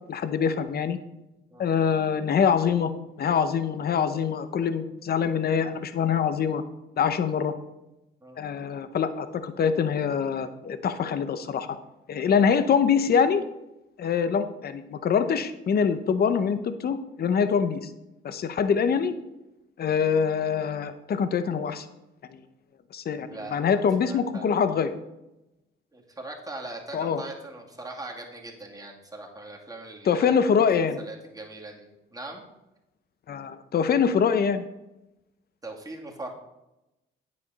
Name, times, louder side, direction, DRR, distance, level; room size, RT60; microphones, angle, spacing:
voice 1, 0.1-1.0 1.6-2.9 3.2-6.6 7.0-7.5 8.4-11.8 12.1-13.4 14.0-17.9 18.2-19.1 19.8-21.9 22.3-22.4 22.9-24.9 26.9-27.2 30.0-31.0 33.3-34.6, left 6 dB, 50° left, 11 dB, 0.8 m, -24 dB
voice 2, 23.3-23.8 24.1-24.6 25.9-30.6 31.0-32.4 35.6-36.3, right 2 dB, 20° right, 0 dB, 2.3 m, -41 dB
9.4 x 8.6 x 4.1 m, 0.95 s
cardioid pair, 90°, 20 cm